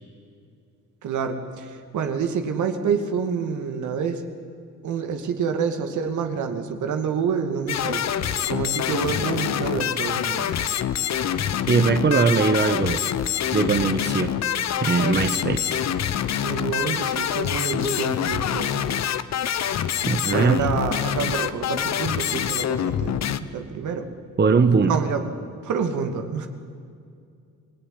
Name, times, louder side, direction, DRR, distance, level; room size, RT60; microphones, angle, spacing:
voice 1, 1.0-4.2 4.8-8.1 8.5-10.5 16.4-18.8 20.3-24.1 24.9-25.2 25.6-26.5, right 6 dB, 75° right, 6 dB, 2.5 m, -27 dB
sound 1, 7.7-23.4, left 9 dB, 60° left, 1.1 m, -26 dB
voice 2, 11.7-13.0 13.5-14.3 14.8-15.8 20.1-20.6 24.4-25.0, right 5 dB, 35° right, 8 dB, 1.5 m, -20 dB
26.5 x 18.5 x 10.0 m, 2.4 s
cardioid pair, 90°, 30 cm